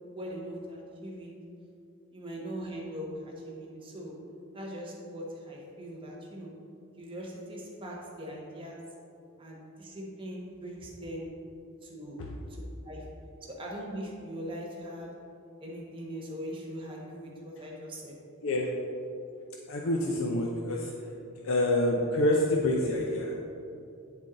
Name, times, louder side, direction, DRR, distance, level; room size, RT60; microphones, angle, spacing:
voice 1, 0.1-1.3 2.1-4.1 4.5-6.5 7.0-8.8 9.4-11.3 11.8-13.1 13.5-15.1 15.6-18.1, equal, 25° right, -3 dB, 1.0 m, -41 dB
voice 2, 18.4-18.7 19.7-20.9 21.4-23.3, left 1 dB, 65° left, -1 dB, 0.5 m, -27 dB
8.9 x 3.8 x 3.8 m, 2.7 s
head